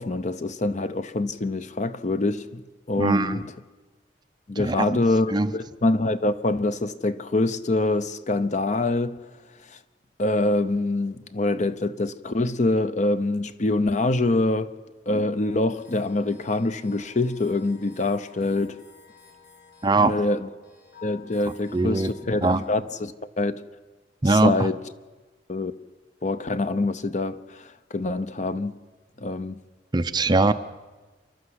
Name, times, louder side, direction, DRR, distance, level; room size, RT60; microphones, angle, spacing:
voice 1, 0.0-3.4 4.5-9.2 9.7-9.8 10.2-14.8 15.1-18.8 20.0-20.5 21.0-23.6 24.3-24.8 25.5-25.7 26.2-28.7 29.2-29.6, left 2 dB, 45° left, 0.7 m, -25 dB
voice 2, 3.0-3.4 4.6-4.9 5.3-5.5 19.8-20.1 21.7-22.1 22.4-22.6 24.2-24.5 29.9-30.5, right 2 dB, 25° right, 0.6 m, -21 dB
sound 1, 15.4-22.9, left 6 dB, 60° left, 6.1 m, -52 dB
28.0 x 11.5 x 8.0 m
head